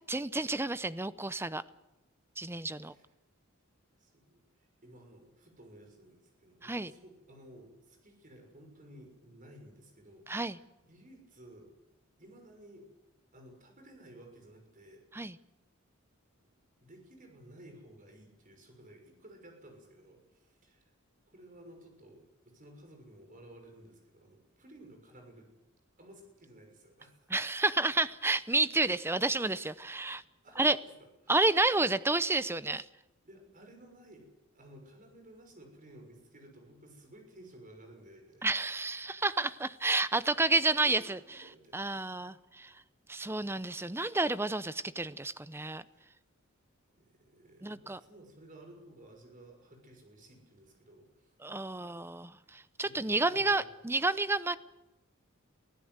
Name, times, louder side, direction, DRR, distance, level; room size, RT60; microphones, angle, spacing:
voice 1, 0.1-1.6 2.4-2.9 6.6-6.9 10.3-10.6 15.1-15.4 27.3-30.2 30.6-30.8 31.3-32.8 38.4-41.2 41.7-42.7 43.1-45.8 47.6-48.0 51.4-54.6, right 2 dB, 10° right, 15 dB, 0.7 m, -30 dB
voice 2, 4.0-11.7 12.2-12.8 13.3-15.3 16.8-20.9 21.3-22.2 22.5-25.5 26.0-27.1 30.4-30.8 31.2-31.4 33.2-34.3 34.5-38.5 40.7-42.2 45.8-46.1 46.9-51.3 52.8-53.7, right 1 dB, 40° right, 3 dB, 6.3 m, -55 dB
24.0 x 16.0 x 8.1 m, 0.96 s
head